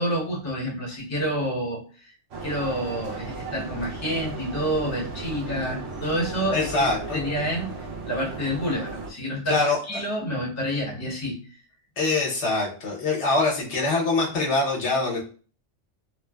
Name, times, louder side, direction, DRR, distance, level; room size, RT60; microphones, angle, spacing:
voice 1, 0.0-1.8 2.4-11.4, equal, 15° left, -4 dB, 0.7 m, -28 dB
sound 1, 2.3-9.1, right 3 dB, 65° right, 0.8 m, -35 dB
voice 2, 6.5-7.2 9.5-10.0 12.0-15.2, left 3 dB, 65° left, -2 dB, 1.1 m, -24 dB
3.1 x 2.1 x 2.2 m, 0.39 s
omnidirectional pair, 1.3 m